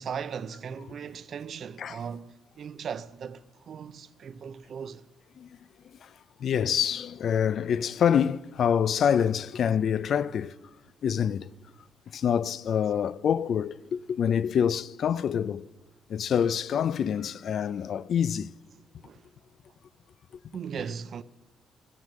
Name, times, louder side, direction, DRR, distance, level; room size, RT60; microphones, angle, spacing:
voice 1, 0.0-5.0 19.0-19.2 20.5-21.2, right 7 dB, 55° right, 0.6 m, -38 dB
voice 2, 6.4-10.5 11.0-11.5 12.1-15.7 16.1-18.5, left 8 dB, 60° left, 0.4 m, -26 dB
12.0 x 9.7 x 7.5 m
cardioid pair, 90°, 0 cm